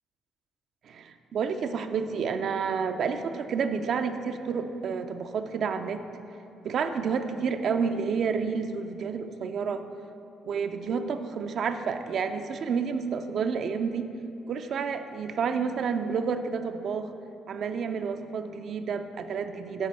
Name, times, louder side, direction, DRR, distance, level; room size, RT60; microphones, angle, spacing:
voice 1, 0.8-6.0 6.6-9.8 10.5-14.1 14.5-17.1 17.5-19.9, right 6 dB, 60° right, 7 dB, 0.5 m, -30 dB
9.7 x 4.1 x 6.7 m, 2.7 s
hypercardioid pair, 55°, 0 cm